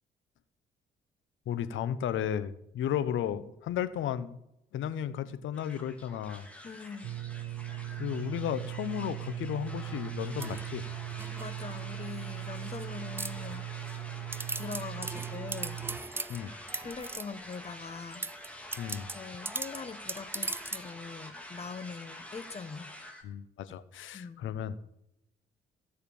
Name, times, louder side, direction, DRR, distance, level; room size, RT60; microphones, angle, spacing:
voice 1, 1.5-4.4 4.7-6.5 8.0-10.9 16.3-16.6 18.8-19.1 23.2-24.8, left 9 dB, 80° left, 14 dB, 1.0 m, -34 dB
sound 1, 5.5-23.2, left 1 dB, 5° left, 2.9 m, -47 dB
voice 2, 6.6-7.1 11.3-13.7 14.6-15.8 16.7-23.0 24.1-24.4, left 5 dB, 30° left, 15 dB, 1.0 m, -43 dB
sound 2, 7.0-16.0, right 15 dB, 75° right, 0.5 m, -39 dB
sound 3, 10.4-11.9 12.4-12.8 13.2-13.9 14.3-17.6 18.1-20.9, right 3 dB, 10° right, 0.4 m, -40 dB
17.0 x 6.7 x 7.1 m, 0.81 s
cardioid pair, 90°, 20 cm